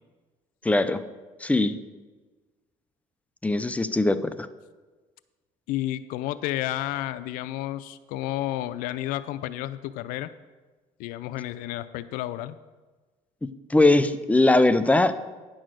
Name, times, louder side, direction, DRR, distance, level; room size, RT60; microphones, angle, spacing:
voice 1, 0.6-1.0 1.4-1.8 3.4-4.2 13.7-15.3, left 2 dB, 10° left, 12 dB, 0.6 m, -20 dB
voice 2, 5.7-10.3 11.0-12.6, left 14 dB, 85° left, 15 dB, 0.4 m, -31 dB
9.9 x 6.3 x 6.3 m, 1.3 s
cardioid pair, 105°, 14 cm